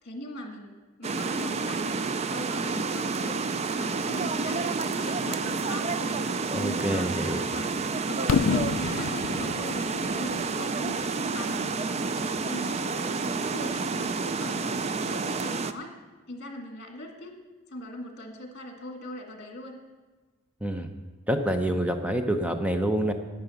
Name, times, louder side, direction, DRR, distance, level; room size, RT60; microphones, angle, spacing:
voice 1, 0.0-3.4 3.8-7.7 8.1-15.9 16.3-17.3 17.7-19.8, left 1 dB, 50° left, 3 dB, 1.8 m, -40 dB
sound 1, 1.0-15.7, right 4 dB, 30° right, 0.4 m, -29 dB
voice 2, 6.5-7.4 20.6-20.9 21.3-23.1, right 1 dB, 5° right, 6 dB, 0.7 m, -27 dB
Fireworks, 8.3-12.2, left 6 dB, 70° left, 0.4 m, -30 dB
9.6 x 9.0 x 7.0 m, 1.3 s
head